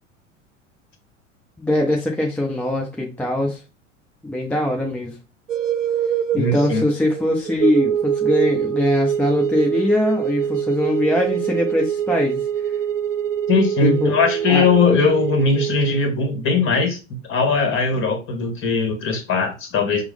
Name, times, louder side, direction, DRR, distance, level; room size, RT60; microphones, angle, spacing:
voice 1, 1.6-3.6 4.2-5.2 6.3-12.7 13.8-14.1 14.5-14.6, left 1 dB, 5° left, 0.4 m, -22 dB
sound 1, 5.5-16.1, right 9 dB, 80° right, 0.5 m, -24 dB
voice 2, 6.4-6.8 13.5-20.0, left 4 dB, 30° left, 1.2 m, -20 dB
5.9 x 2.0 x 3.4 m
figure-of-eight pair, 80°, 38 cm